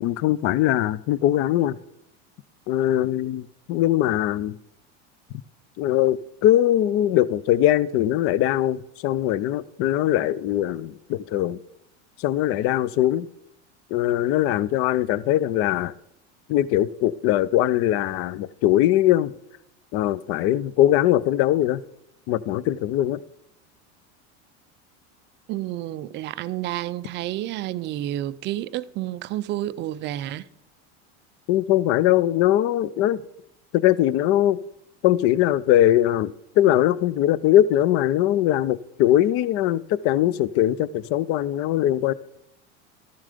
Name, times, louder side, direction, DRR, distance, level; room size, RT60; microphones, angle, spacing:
voice 1, 0.0-1.8 2.7-4.6 5.8-11.6 12.2-13.3 13.9-15.9 16.5-19.3 19.9-21.8 22.3-23.2 31.5-33.2 33.7-34.6 35.0-42.1, left 13 dB, 40° left, 0.4 m, -21 dB
voice 2, 25.5-30.5, right 14 dB, 35° right, 0.4 m, -30 dB
13.5 x 7.4 x 5.0 m
supercardioid pair, 135°, 35 cm